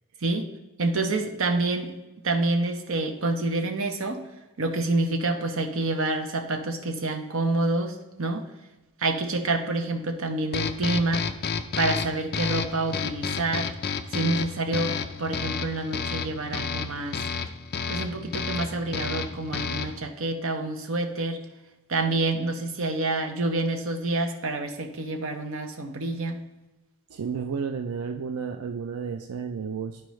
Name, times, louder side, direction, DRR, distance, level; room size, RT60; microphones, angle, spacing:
voice 1, 0.8-1.9 2.2-4.2 4.6-8.5 9.0-11.3 11.8-13.7 14.1-17.2 17.9-21.4 21.9-26.4, right 2 dB, 65° right, 4 dB, 0.9 m, -27 dB
sound 1, 10.5-20.1, left 6 dB, 45° left, 0.5 m, -31 dB
voice 2, 27.1-30.0, right 6 dB, 90° right, 5 dB, 0.4 m, -32 dB
11.5 x 4.6 x 3.1 m, 1.0 s
head